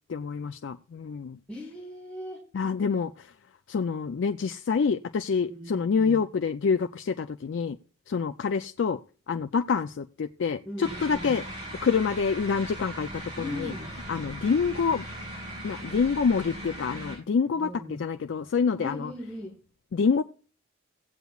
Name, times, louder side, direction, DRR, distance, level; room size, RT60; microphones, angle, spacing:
voice 1, 0.1-1.4 2.5-3.3 3.7-7.8 8.1-9.0 9.3-11.4 11.8-13.7 14.1-15.0 15.6-19.1 19.9-20.2, left 5 dB, 75° left, 0.4 m, -27 dB
voice 2, 1.5-2.5 5.5-6.2 10.6-11.3 13.4-14.0 17.5-18.0 18.8-19.6, left 1 dB, 5° left, 1.5 m, -38 dB
sound 1, 10.8-17.2, equal, 25° right, 6.1 m, -39 dB
17.0 x 8.1 x 2.3 m
head